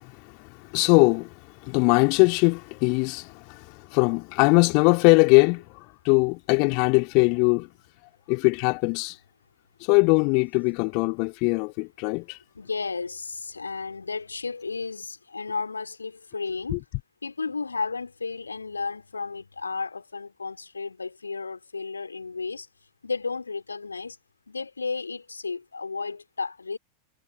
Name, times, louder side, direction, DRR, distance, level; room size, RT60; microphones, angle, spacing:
voice 1, 0.0-1.3 1.6-7.7 8.3-9.2 9.8-12.4 16.7-16.8, left 35 dB, 45° left, 2.8 m, -21 dB
voice 2, 12.5-16.8 17.2-22.7 23.0-24.2 24.5-26.8, left 4 dB, 75° left, 2.8 m, -33 dB
figure-of-eight pair, 90°, 0 cm